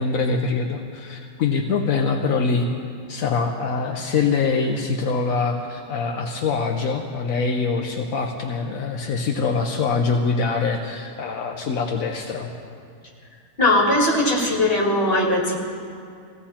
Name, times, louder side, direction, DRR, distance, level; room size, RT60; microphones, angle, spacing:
voice 1, 0.0-2.7 3.1-12.5, left 4 dB, 80° left, 2 dB, 1.3 m, -24 dB
voice 2, 13.6-15.6, left 1 dB, 45° left, -2 dB, 2.8 m, -19 dB
19.5 x 16.5 x 4.3 m, 2.4 s
omnidirectional pair, 1.4 m